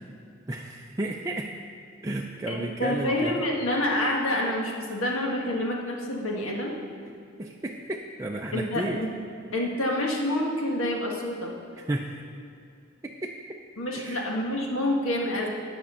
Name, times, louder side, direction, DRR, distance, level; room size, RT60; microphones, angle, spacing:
voice 1, 0.5-1.5 2.0-3.4 7.4-9.0 11.8-12.2 13.0-13.4 14.0-14.2, right 1 dB, 15° right, 0 dB, 0.4 m, -32 dB
voice 2, 2.5-6.8 8.5-9.1 9.5-11.5 13.8-15.5, left 1 dB, 80° left, -1 dB, 1.5 m, -27 dB
10.5 x 6.1 x 6.9 m, 2.4 s
head